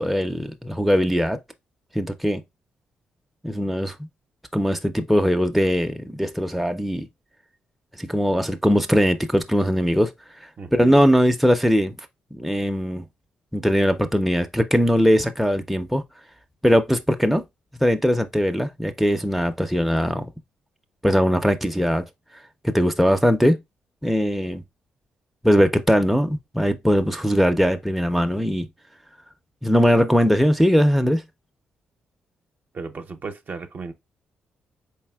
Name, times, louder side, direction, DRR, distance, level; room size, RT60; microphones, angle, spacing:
voice 1, 0.0-1.4 1.9-2.4 3.4-3.9 4.5-7.1 8.0-10.1 10.7-12.0 12.3-13.0 13.5-16.0 16.6-17.4 17.8-20.3 21.0-22.0 22.6-23.6 24.0-24.6 25.4-28.7 29.6-31.2, equal, ahead, 0.4 m, -20 dB
voice 2, 10.6-11.0 32.7-33.9, right 4 dB, 50° right, 0.6 m, -35 dB
4.1 x 3.3 x 2.2 m
supercardioid pair, 50°, 4 cm